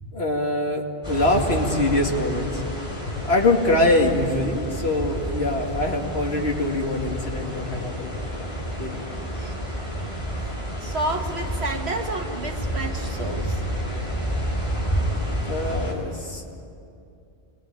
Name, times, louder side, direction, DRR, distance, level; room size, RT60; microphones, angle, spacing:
voice 1, 0.1-2.6 3.2-8.3 8.8-9.1 15.0-15.2 15.5-16.5, left 2 dB, 70° left, 1 dB, 2.6 m, -24 dB
sound 1, 1.0-15.9, equal, 30° left, 5.1 m, -30 dB
voice 2, 10.8-13.6, right 2 dB, 80° right, 4 dB, 2.0 m, -30 dB
26.5 x 20.5 x 9.0 m, 2.5 s
omnidirectional pair, 1.1 m